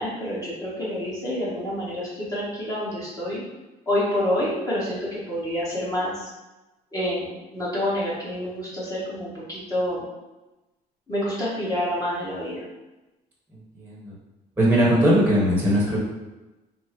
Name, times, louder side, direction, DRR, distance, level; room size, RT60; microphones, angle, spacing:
voice 1, 0.0-3.4 3.9-6.3 6.9-10.0 11.1-12.6, left 1 dB, 20° left, -8 dB, 1.1 m, -28 dB
voice 2, 13.5-14.1 14.6-16.0, equal, 10° right, -6 dB, 1.0 m, -20 dB
3.5 x 2.0 x 2.9 m, 1.1 s
cardioid pair, 110°, 17 cm